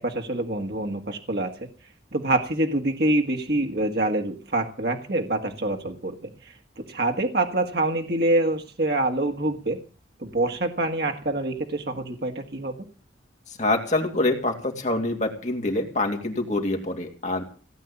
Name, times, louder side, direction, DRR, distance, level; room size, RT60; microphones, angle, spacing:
voice 1, 0.0-1.7 2.1-9.8 10.2-12.9, right 2 dB, 55° right, 3 dB, 1.8 m, -26 dB
voice 2, 13.6-17.4, left 2 dB, 40° left, 3 dB, 2.8 m, -25 dB
17.0 x 8.5 x 8.5 m, 0.38 s
head